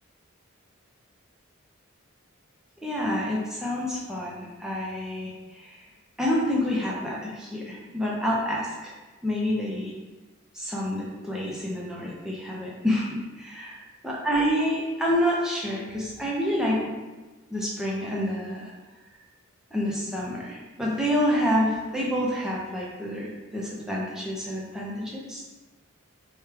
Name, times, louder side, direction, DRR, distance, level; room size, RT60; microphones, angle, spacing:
voice 1, 2.8-5.8 6.2-8.9 9.2-9.9 10.5-13.8 14.0-17.0 17.5-18.7 19.7-25.4, equal, 5° right, -5 dB, 0.6 m, -28 dB
4.8 x 2.3 x 3.4 m, 1.2 s
head